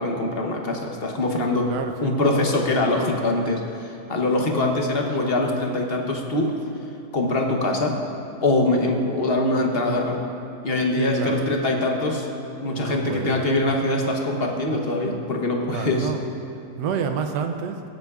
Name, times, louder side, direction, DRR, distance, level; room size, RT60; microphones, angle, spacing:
voice 1, 0.0-1.7 2.0-6.5 7.1-8.0 8.4-10.2 10.6-12.3 12.6-16.1, left 2 dB, 40° left, 1 dB, 1.0 m, -23 dB
voice 2, 1.7-2.2 10.9-11.5 12.7-13.5 15.7-16.3 16.8-17.8, right 6 dB, 90° right, 6 dB, 1.3 m, -29 dB
23.0 x 7.6 x 2.4 m, 2.8 s
omnidirectional pair, 1.8 m